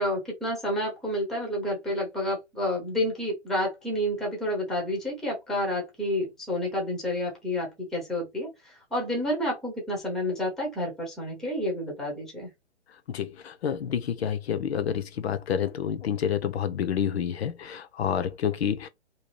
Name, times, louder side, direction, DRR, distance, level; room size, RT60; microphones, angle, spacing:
voice 1, 0.0-12.5, left 1 dB, ahead, 0.5 m, -29 dB
voice 2, 13.1-18.9, left 8 dB, 60° left, 0.5 m, -29 dB
2.6 x 2.3 x 3.0 m
hypercardioid pair, 135°, 35 cm